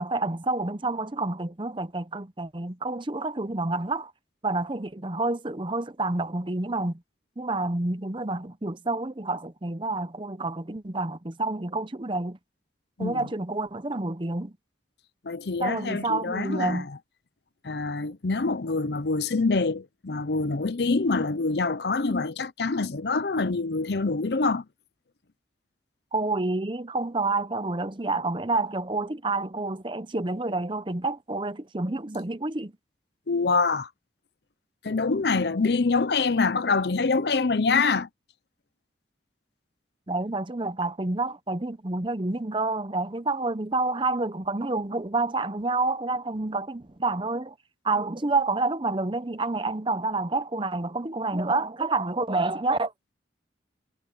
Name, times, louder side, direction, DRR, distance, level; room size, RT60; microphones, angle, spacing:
voice 1, 0.0-4.1 4.4-7.0 7.4-12.4 13.0-14.5 15.6-16.9 26.1-32.7 40.1-47.5 47.8-52.9, right 2 dB, 25° right, 0.7 m, -28 dB
voice 2, 15.2-16.8 17.6-24.6 33.3-33.9 34.8-38.1, left 4 dB, 60° left, 0.7 m, -25 dB
head